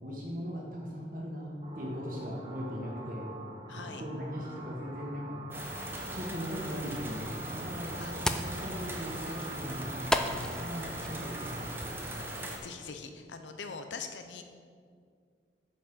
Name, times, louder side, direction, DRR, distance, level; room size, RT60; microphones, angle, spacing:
voice 1, 0.0-3.3 3.9-5.4 6.1-11.7, equal, 50° right, -3 dB, 1.4 m, -39 dB
sound 1, 1.6-11.7, right 2 dB, 30° right, 1.1 m, -47 dB
voice 2, 3.7-4.0 8.0-8.1 12.3-14.4, left 5 dB, 90° left, 7 dB, 0.6 m, -43 dB
sound 2, 5.5-12.6, right 1 dB, 10° right, 0.9 m, -39 dB
sound 3, 6.6-12.0, left 1 dB, 5° left, 0.3 m, -37 dB
8.6 x 5.3 x 6.9 m, 2.1 s
head